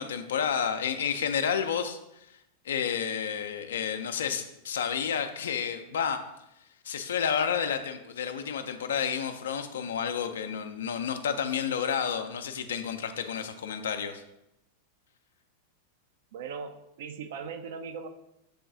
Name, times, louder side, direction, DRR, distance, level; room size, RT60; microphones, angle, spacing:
voice 1, 0.0-2.0 2.6-6.2 6.8-14.2, left 7 dB, 65° left, 8 dB, 0.5 m, -30 dB
voice 2, 16.3-16.7 17.0-18.1, right 6 dB, 55° right, 8 dB, 0.5 m, -38 dB
6.9 x 3.8 x 3.8 m, 0.86 s
figure-of-eight pair, 90°, 0 cm